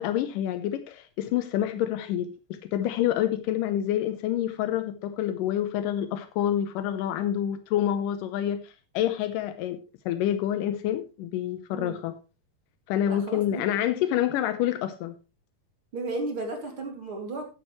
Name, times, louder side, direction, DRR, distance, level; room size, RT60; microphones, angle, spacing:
voice 1, 0.0-12.1 12.9-15.1, left 11 dB, 85° left, 2.4 m, -28 dB
voice 2, 13.1-13.7 15.9-17.5, right 2 dB, 40° right, 3.1 m, -34 dB
13.0 x 10.0 x 3.2 m
omnidirectional pair, 3.8 m